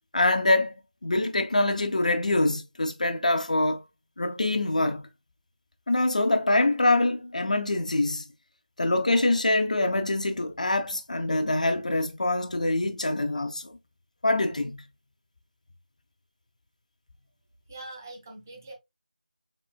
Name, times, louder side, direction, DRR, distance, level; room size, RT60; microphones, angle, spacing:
voice 1, 0.1-0.7 1.0-3.8 4.2-5.0 5.9-8.2 8.8-13.7 14.2-14.8, left 2 dB, 50° left, 0.5 m, -24 dB
voice 2, 17.7-18.7, right 2 dB, 20° right, 1.0 m, -43 dB
4.0 x 3.7 x 2.2 m
figure-of-eight pair, 170°, 5 cm